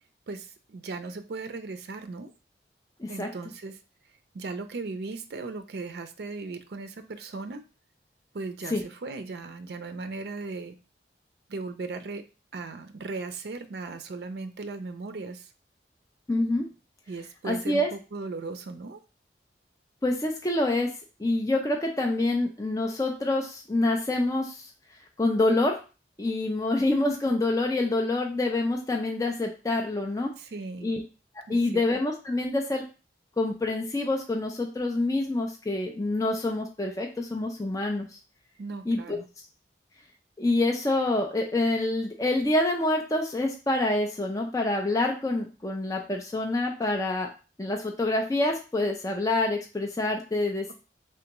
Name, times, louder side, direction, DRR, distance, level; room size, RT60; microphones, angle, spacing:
voice 1, 0.3-2.3 3.1-3.8 4.3-7.6 8.3-10.8 11.5-12.2 12.5-15.5 17.1-19.0 30.4-30.9 31.5-31.8 38.6-39.2, right 3 dB, 65° right, 8 dB, 0.4 m, -37 dB
voice 2, 16.3-16.7 17.4-17.9 20.0-20.9 21.2-24.7 25.2-25.8 26.2-30.3 30.8-31.0 31.5-32.8 33.4-38.2 38.9-39.2 40.4-47.3 47.6-50.7, left 2 dB, 20° left, 2 dB, 0.4 m, -26 dB
3.4 x 3.4 x 2.9 m, 0.32 s
head